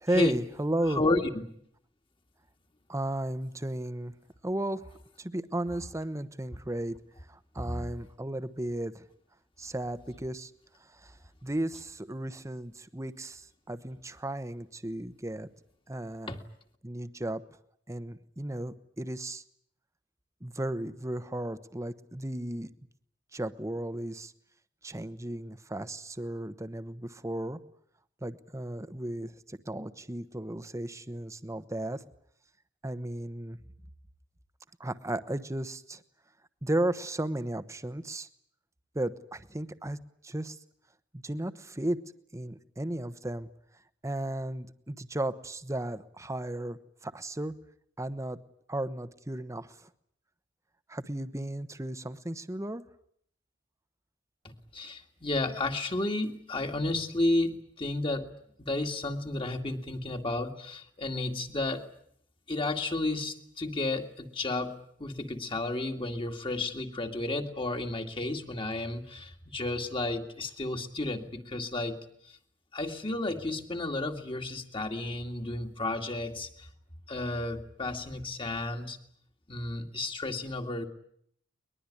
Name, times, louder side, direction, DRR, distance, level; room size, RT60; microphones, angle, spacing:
voice 1, 0.0-1.0 2.9-4.1 4.4-4.9 5.2-7.0 7.3-9.0 9.6-10.5 11.0-11.1 11.4-15.5 15.9-16.4 16.8-17.4 17.9-19.4 20.4-22.7 23.3-24.3 24.8-27.6 28.2-32.0 32.8-33.6 34.8-36.0 36.6-38.3 38.9-40.0 40.2-40.6 41.1-42.0 42.3-43.5 44.0-47.5 48.0-48.4 48.7-49.9 50.9-52.8, right 1 dB, 15° right, 12 dB, 1.1 m, -34 dB
voice 2, 0.9-1.4 7.6-7.9 16.3-16.4 54.4-58.3 58.6-61.9 62.5-72.0 72.7-76.7 77.1-79.0 79.5-80.9, left 2 dB, 30° left, 5 dB, 2.2 m, -32 dB
22.5 x 21.0 x 10.0 m, 0.67 s
head